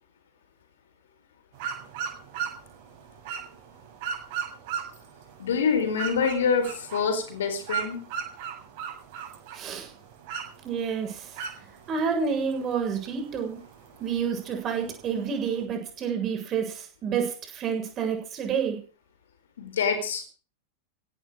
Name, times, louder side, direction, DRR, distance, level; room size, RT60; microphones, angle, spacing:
sound 1, 1.5-15.6, right 7 dB, 45° right, 7.0 m, -38 dB
voice 1, 5.4-8.0 19.6-20.2, left 6 dB, 60° left, 9 dB, 4.4 m, -26 dB
voice 2, 9.5-9.9 10.6-11.3 11.9-13.6 14.0-18.8, right 6 dB, 30° right, 4 dB, 7.2 m, -29 dB
16.5 x 12.5 x 6.5 m, 0.39 s
figure-of-eight pair, 90°, 0 cm